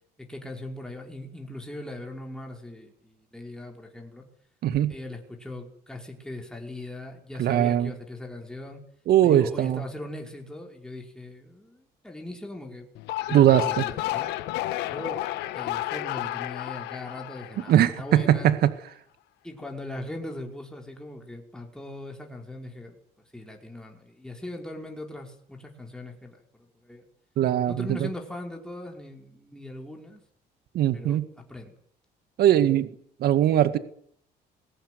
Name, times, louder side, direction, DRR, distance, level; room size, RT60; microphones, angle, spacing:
voice 1, 0.2-4.3 4.9-8.8 9.2-12.9 13.3-14.3 14.9-15.2 15.5-18.5 19.4-23.0 23.3-27.1 27.7-30.2 30.9-31.2 31.5-31.7, left 1 dB, 5° left, 5.3 m, -40 dB
voice 2, 4.6-4.9 7.4-7.9 9.1-9.8 13.3-13.8 17.7-18.7 27.4-28.0 30.7-31.3 32.4-32.9 33.2-33.8, right 11 dB, 70° right, 1.9 m, -20 dB
sound 1, 12.9-18.3, left 15 dB, 90° left, 1.7 m, -32 dB
22.0 x 17.5 x 9.5 m
cardioid pair, 110°, 17 cm